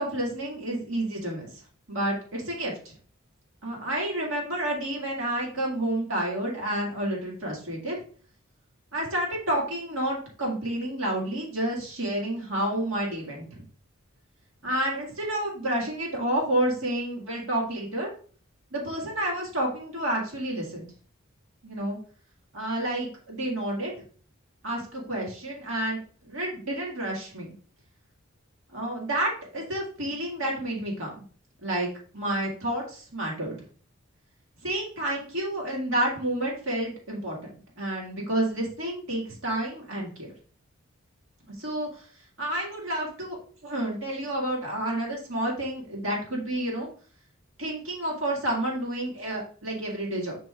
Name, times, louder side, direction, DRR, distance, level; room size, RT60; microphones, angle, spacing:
voice 1, 0.0-1.5 1.9-2.9 3.6-8.0 8.9-13.6 14.6-18.1 18.7-20.9 21.6-22.0 22.5-23.9 24.6-27.5 28.7-31.2 31.6-33.6 34.6-37.4 37.8-40.3 41.6-42.1 42.4-46.9 47.6-50.4, right 1 dB, 70° right, -2 dB, 2.2 m, -30 dB
5.7 x 3.5 x 4.9 m, 0.43 s
head